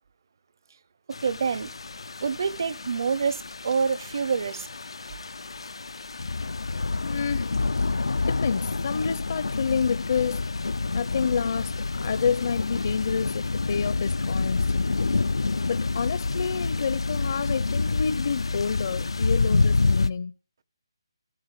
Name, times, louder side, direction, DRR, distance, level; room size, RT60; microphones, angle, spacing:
sound 1, 1.1-20.1, left 3 dB, 85° left, 0.7 m, -28 dB
voice 1, 1.2-1.7 2.2-4.7, right 5 dB, 45° right, 0.8 m, -27 dB
voice 2, 6.9-7.6 8.3-10.4 10.9-15.3 15.7-20.3, left 6 dB, 40° left, 0.7 m, -29 dB
14.0 x 13.5 x 6.8 m
hypercardioid pair, 170°, 3 cm